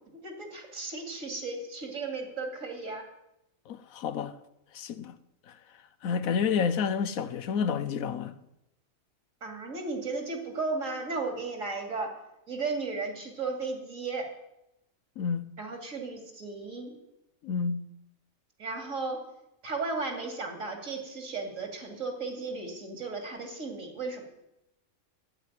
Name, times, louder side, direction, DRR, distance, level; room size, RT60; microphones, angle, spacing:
voice 1, 0.2-3.0 9.4-12.1 12.5-14.2 15.6-16.9 18.6-19.2 19.6-24.2, right 3 dB, 70° right, 3.0 m, -35 dB
voice 2, 3.7-4.3 4.7-5.2 5.5-5.6 6.0-8.4 15.2-15.5 17.4-17.9, left 6 dB, 80° left, 1.2 m, -30 dB
12.0 x 9.5 x 9.1 m
omnidirectional pair, 1.4 m